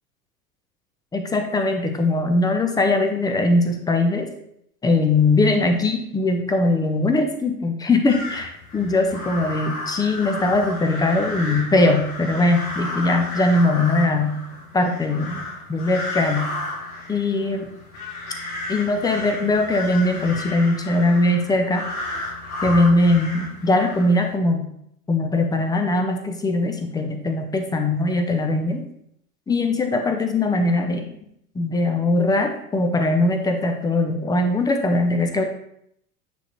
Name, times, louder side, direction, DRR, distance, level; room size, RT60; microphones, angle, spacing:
voice 1, 1.1-4.3 4.8-14.4 14.7-15.4 15.7-16.5 17.1-17.7 18.7-21.8 22.6-24.7 25.1-28.8 29.5-31.1 31.5-35.4, left 2 dB, 10° left, 6 dB, 0.6 m, -21 dB
sound 1, 8.1-24.3, left 2 dB, 65° left, 1.6 m, -33 dB
9.1 x 3.6 x 3.0 m, 0.72 s
figure-of-eight pair, 80°, 46 cm